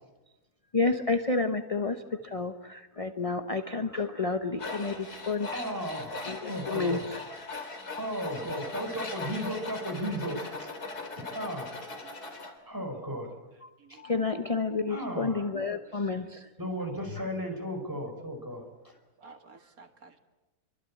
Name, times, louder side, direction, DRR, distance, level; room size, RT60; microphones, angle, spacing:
voice 1, 0.7-5.6 6.3-7.2 14.0-16.5 17.2-17.3, left 3 dB, 25° left, 8 dB, 1.0 m, -30 dB
Tools, 4.6-12.5, left 3 dB, 75° left, 4.1 m, -39 dB
voice 2, 5.5-6.2 6.5-7.0 7.9-10.7 11.3-11.7 12.6-13.3 13.9-14.0 14.9-15.4 16.6-18.6, equal, 10° right, 3 dB, 5.2 m, -35 dB
voice 3, 12.0-12.4 12.6-12.7 13.8-14.0 15.9-16.1 19.2-20.2, right 4 dB, 65° right, 6 dB, 2.2 m, -54 dB
26.0 x 24.5 x 8.6 m, 1.1 s
omnidirectional pair, 1.7 m